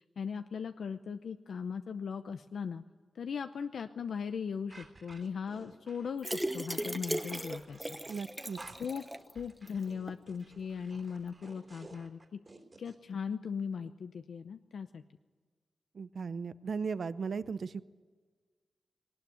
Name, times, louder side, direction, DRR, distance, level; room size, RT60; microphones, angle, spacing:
voice 1, 0.0-2.8 3.1-8.0 8.8-9.0 9.3-12.4 12.8-15.0, left 6 dB, 80° left, 8 dB, 0.7 m, -38 dB
sound 1, 4.7-13.0, right 2 dB, 30° right, 3.2 m, -54 dB
sound 2, 6.2-9.3 9.7-9.8 10.1-10.2, right 1 dB, 10° right, 0.8 m, -37 dB
voice 2, 8.1-8.6 15.9-17.8, right 5 dB, 60° right, 14 dB, 0.7 m, -36 dB
20.5 x 19.0 x 9.4 m, 1.5 s
wide cardioid pair, 150°, 0 cm